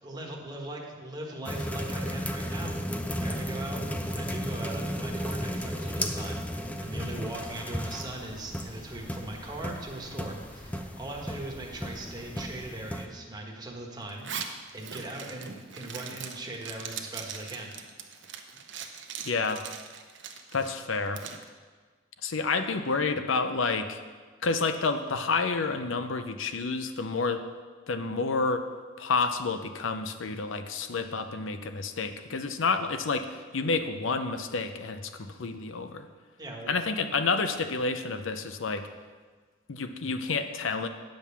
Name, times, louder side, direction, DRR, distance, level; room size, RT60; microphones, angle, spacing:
voice 1, 0.0-17.7 36.4-36.8, right 1 dB, 20° right, 0 dB, 1.3 m, -40 dB
sound 1, 1.5-13.1, equal, 5° left, 0.4 m, -34 dB
sound 2, 2.4-17.6, left 1 dB, 50° left, 2.6 m, -54 dB
Zipper (clothing), 14.1-21.4, right 7 dB, 60° right, 0.8 m, -41 dB
voice 2, 19.2-19.6 20.5-21.2 22.2-24.0 24.4-27.4 27.9-28.7 29.0-36.1 36.7-38.8 39.7-40.9, left 4 dB, 75° left, 9 dB, 0.7 m, -29 dB
9.1 x 5.2 x 6.9 m, 1.5 s
head